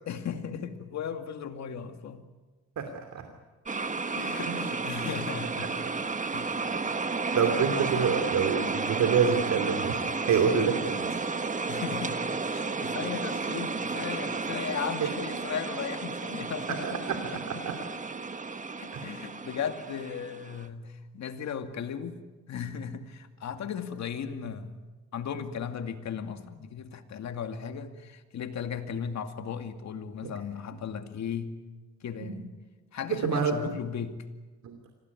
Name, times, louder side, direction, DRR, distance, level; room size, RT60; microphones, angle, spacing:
voice 1, 0.1-2.3 4.1-5.8 6.3-6.6 11.7-12.2 12.5-17.1 18.8-22.2 22.5-24.7 25.1-31.6 32.0-32.5 32.9-34.2, left 7 dB, 65° left, 7 dB, 2.4 m, -36 dB
voice 2, 2.8-3.2 4.5-4.6 5.6-5.7 7.3-10.0 10.3-11.1 15.0-15.1 16.7-17.7 18.9-19.1 30.2-30.3 32.2-32.4 33.1-33.7 34.6-34.8, right 6 dB, 70° right, 5 dB, 2.7 m, -27 dB
sound 1, 3.7-20.7, right 4 dB, 25° right, 1.5 m, -32 dB
25.5 x 18.0 x 9.6 m, 1.3 s
cardioid pair, 90°, 30 cm